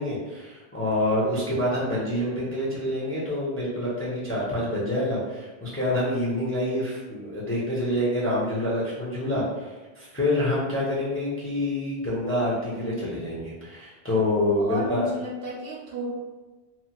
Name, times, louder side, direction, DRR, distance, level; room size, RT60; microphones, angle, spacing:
voice 1, 0.0-15.1, left 1 dB, 15° left, -7 dB, 0.5 m, -27 dB
voice 2, 14.6-16.1, right 1 dB, 65° right, -2 dB, 0.8 m, -33 dB
2.8 x 2.2 x 2.8 m, 1.2 s
omnidirectional pair, 1.1 m